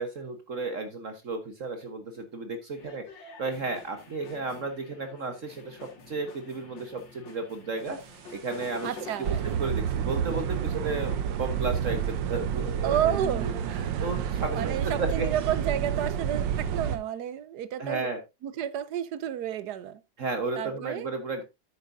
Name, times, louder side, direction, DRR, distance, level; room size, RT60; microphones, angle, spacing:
voice 1, 0.0-3.0 3.4-8.0 8.3-8.9 9.2-15.3 16.9-17.0 17.8-18.2 20.2-21.4, right 3 dB, 45° right, 1.5 m, -33 dB
sound 1, 2.8-9.6, left 4 dB, 80° left, 2.5 m, -48 dB
sound 2, 8.0-8.4 8.8-8.9 9.2-17.0, right 8 dB, 85° right, 1.5 m, -29 dB
voice 2, 8.8-9.4 12.8-13.5 13.8-13.9 14.5-18.1 18.4-20.0 20.6-21.1, right 10 dB, 70° right, 1.1 m, -31 dB
10.5 x 8.8 x 2.6 m
omnidirectional pair, 2.0 m